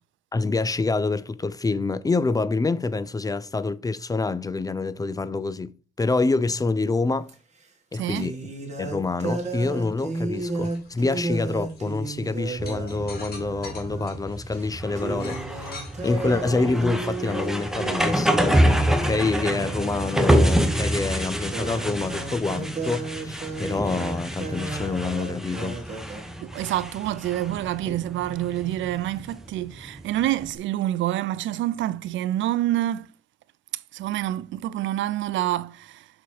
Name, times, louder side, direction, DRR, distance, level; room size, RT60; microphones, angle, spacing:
voice 1, 0.3-5.7 6.0-7.3 7.9-8.4 8.8-25.8, left 3 dB, 20° left, 0.4 m, -27 dB
sound 1, 7.3-7.4 8.1-14.2 14.5-14.7 14.9-26.2, right 3 dB, 35° right, 2.0 m, -33 dB
voice 2, 7.9-8.3 26.4-33.1 33.9-36.1, right 14 dB, 75° right, 0.4 m, -27 dB
sound 2, 8.8-27.1, left 3 dB, 50° left, 2.5 m, -50 dB
sound 3, 12.6-30.5, equal, ahead, 1.0 m, -27 dB
6.0 x 4.0 x 4.8 m
cardioid pair, 90°, 20 cm